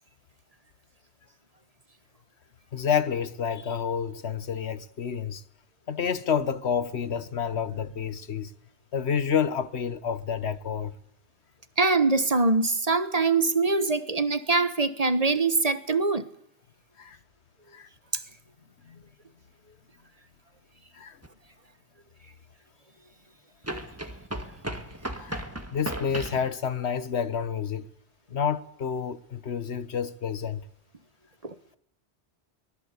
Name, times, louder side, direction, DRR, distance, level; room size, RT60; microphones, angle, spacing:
voice 1, 2.7-5.4 5.9-8.5 8.9-10.9 17.0-17.2 17.7-17.9 18.8-19.0 20.9-21.2 25.2-25.4 25.7-27.9 28.3-30.6, left 7 dB, 85° left, 1.4 m, -29 dB
voice 2, 11.8-16.3 31.4-31.5, right 3 dB, 35° right, 1.3 m, -23 dB
sound 1, 21.2-21.3 23.6-26.5, right 1 dB, 15° right, 1.8 m, -35 dB
23.5 x 19.5 x 8.3 m
omnidirectional pair, 1.1 m